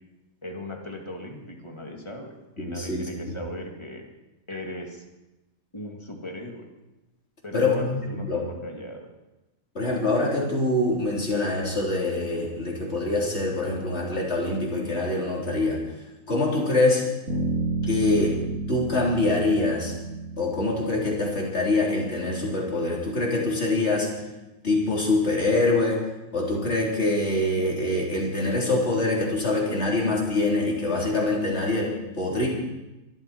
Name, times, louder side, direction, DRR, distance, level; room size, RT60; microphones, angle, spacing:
voice 1, 0.4-2.3 2.6-4.1 4.5-5.0 5.7-6.7 7.4-9.1, left 1 dB, 20° left, 1 dB, 2.3 m, -37 dB
voice 2, 2.6-3.4 7.5-8.4 9.7-15.8 16.3-17.0 17.8-18.4 18.7-19.9 20.4-24.1 24.6-26.0 26.3-32.5, left 2 dB, 50° left, -3 dB, 4.3 m, -24 dB
Bass guitar, 17.3-21.7, right 3 dB, 75° right, 6.3 m, -31 dB
23.0 x 13.0 x 4.6 m, 1.0 s
omnidirectional pair, 1.4 m